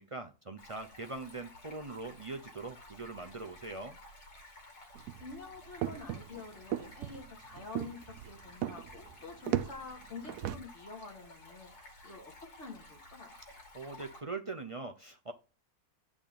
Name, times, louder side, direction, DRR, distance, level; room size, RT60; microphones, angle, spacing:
voice 1, 0.0-4.0 13.5-15.3, right 3 dB, 45° right, 0.4 m, -42 dB
Stream, 0.6-14.2, left 2 dB, 80° left, 2.8 m, -54 dB
sound 1, 4.9-10.6, right 12 dB, 85° right, 1.2 m, -37 dB
voice 2, 5.2-13.3, left 4 dB, 45° left, 2.7 m, -48 dB
9.8 x 3.6 x 6.9 m
omnidirectional pair, 1.6 m